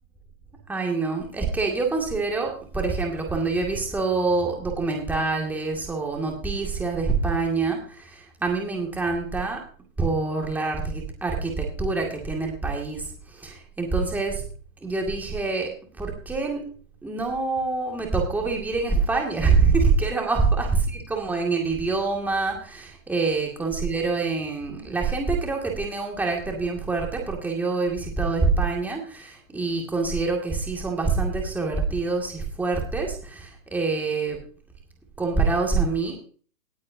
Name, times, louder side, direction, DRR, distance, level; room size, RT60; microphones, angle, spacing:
voice 1, 0.7-9.6 10.0-14.4 14.8-16.7 17.0-34.4 35.2-36.2, right 4 dB, 5° right, 0 dB, 2.2 m, -25 dB
18.5 x 8.4 x 2.7 m, 0.41 s
hypercardioid pair, 155°, 41 cm